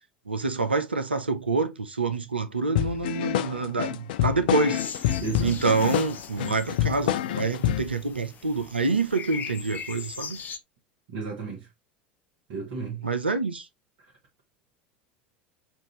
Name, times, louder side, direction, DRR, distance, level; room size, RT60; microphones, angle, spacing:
voice 1, 0.3-4.8 5.4-10.4 13.0-13.7, right 3 dB, 80° right, 0.6 m, -27 dB
sound 1, 2.7-7.9, left 12 dB, 60° left, 0.4 m, -27 dB
sound 2, 4.5-10.6, left 6 dB, 30° left, 0.9 m, -40 dB
voice 2, 5.2-5.6 11.1-11.7 12.5-13.1, right 5 dB, 55° right, 1.3 m, -33 dB
6.0 x 2.6 x 3.0 m
figure-of-eight pair, 75°, 6 cm